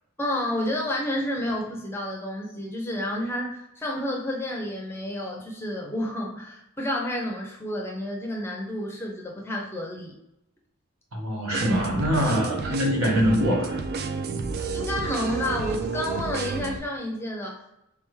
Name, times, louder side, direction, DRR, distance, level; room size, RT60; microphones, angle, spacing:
voice 1, 0.2-10.2 14.7-17.8, left 1 dB, 10° left, 0 dB, 0.6 m, -30 dB
voice 2, 11.1-13.8, equal, 70° right, -1 dB, 1.3 m, -24 dB
sound 1, 11.5-16.8, right 4 dB, 45° right, 0.4 m, -30 dB
3.7 x 3.4 x 3.1 m, 0.85 s
head